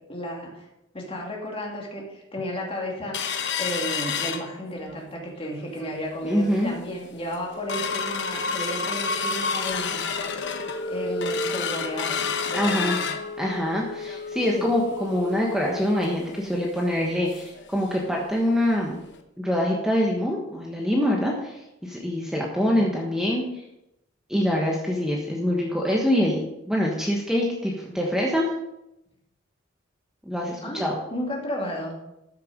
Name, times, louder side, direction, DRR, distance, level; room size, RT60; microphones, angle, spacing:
voice 1, 0.1-0.7 0.9-10.0 10.7-13.1 14.6-14.7 22.6-23.0 30.6-32.0, equal, 30° left, -1 dB, 2.6 m, -33 dB
sound 1, 3.1-5.0 5.4-5.5 5.8-6.2 6.7-6.8 7.1-17.6 18.0-18.1 18.4-18.6 19.1-19.2, left 5 dB, 60° left, 1.0 m, -30 dB
voice 2, 6.2-6.7 12.5-13.0 13.4-19.0 19.4-23.4 24.3-28.5 30.2-31.0, equal, 5° right, -2 dB, 1.3 m, -25 dB
13.0 x 6.8 x 5.1 m, 0.88 s
head